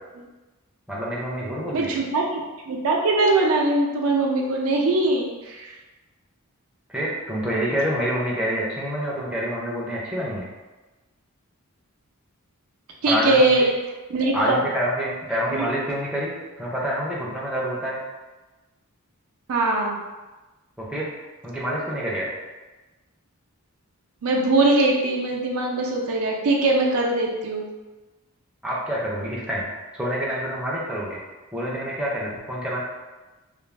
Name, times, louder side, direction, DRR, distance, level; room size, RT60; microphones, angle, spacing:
voice 1, 0.9-2.0 6.9-10.5 13.1-13.5 14.3-18.0 20.8-21.1 21.4-22.3 28.6-31.2 31.5-32.8, equal, 5° right, -6 dB, 0.5 m, -27 dB
voice 2, 1.7-2.4 2.7-5.7 13.0-13.7 14.1-14.6 15.5-15.7 19.5-20.0 24.2-27.7, right 2 dB, 75° right, -1 dB, 0.5 m, -21 dB
2.4 x 2.0 x 3.1 m, 1.1 s
head